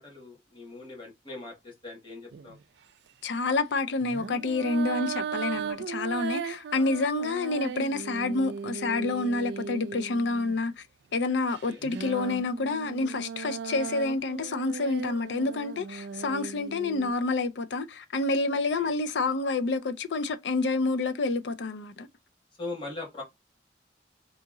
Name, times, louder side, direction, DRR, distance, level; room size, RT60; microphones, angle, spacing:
voice 1, 0.0-2.6 11.7-11.8 18.5-18.9 22.6-23.2, left 2 dB, 25° left, 1.2 m, -41 dB
sound 1, 2.3-2.6 4.0-10.6 11.5-17.1, right 6 dB, 70° right, 0.3 m, -37 dB
voice 2, 3.2-10.8 11.1-22.1, left 3 dB, 85° left, 0.5 m, -28 dB
2.8 x 2.7 x 3.6 m
head